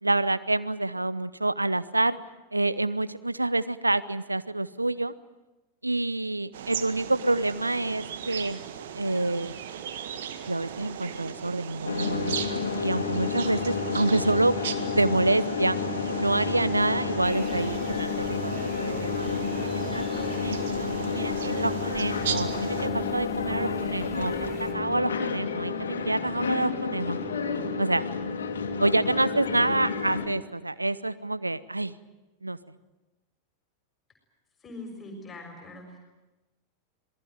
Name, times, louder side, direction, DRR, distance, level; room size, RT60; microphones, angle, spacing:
voice 1, 0.0-2.2 2.5-5.1 5.8-8.6 8.9-9.5 10.5-14.5 14.9-15.8 16.2-27.2 27.8-28.0 28.8-31.9 32.4-32.6, right 2 dB, 85° right, 15 dB, 0.9 m, -27 dB
sound 1, 6.5-22.9, right 8 dB, 60° right, 1.8 m, -38 dB
sound 2, 11.8-30.3, left 5 dB, 65° left, 2.5 m, -30 dB
sound 3, 17.2-24.7, right 3 dB, 25° right, 5.1 m, -45 dB
voice 2, 34.6-36.0, left 2 dB, 20° left, 2 dB, 6.4 m, -42 dB
27.0 x 20.0 x 9.1 m, 1.1 s
figure-of-eight pair, 90°, 0 cm